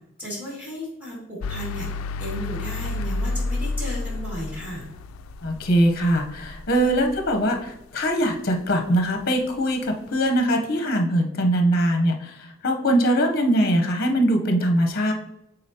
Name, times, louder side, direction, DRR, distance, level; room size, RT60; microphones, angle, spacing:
voice 1, 0.2-1.9 2.2-4.8, equal, 10° right, -5 dB, 2.0 m, -34 dB
sound 1, 1.4-7.6, left 3 dB, 80° left, 0.3 m, -31 dB
voice 2, 5.4-15.1, right 1 dB, 50° left, 4 dB, 0.8 m, -22 dB
8.6 x 4.0 x 2.8 m, 0.86 s
head